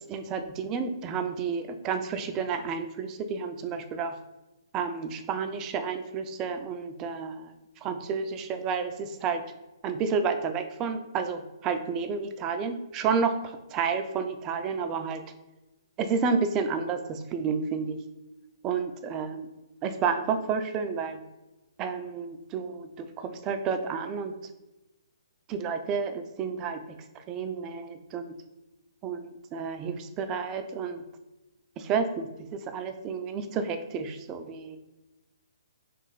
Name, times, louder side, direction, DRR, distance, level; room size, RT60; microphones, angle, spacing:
voice 1, 0.1-4.1 4.7-7.5 7.8-9.4 9.8-15.2 16.0-18.0 18.6-19.5 19.8-21.2 21.8-24.3 25.5-28.4 29.0-31.0 31.8-34.8, right 5 dB, 20° right, 7 dB, 0.3 m, -31 dB
3.1 x 2.5 x 3.8 m, 0.99 s
hypercardioid pair, 155°, 2 cm